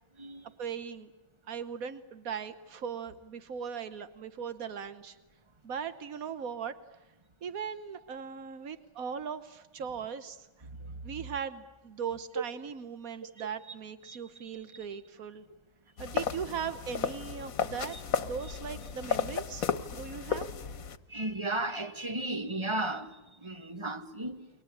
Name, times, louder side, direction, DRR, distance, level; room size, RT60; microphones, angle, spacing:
voice 1, 0.6-1.1 1.5-5.2 5.6-6.7 7.4-10.5 11.0-15.4 16.0-20.5, right 7 dB, 90° right, 1.6 m, -39 dB
sound 1, 16.0-21.0, left 6 dB, 80° left, 1.6 m, -34 dB
voice 2, 21.1-24.5, right 2 dB, 20° right, 1.7 m, -35 dB
29.5 x 23.0 x 8.6 m
omnidirectional pair, 1.4 m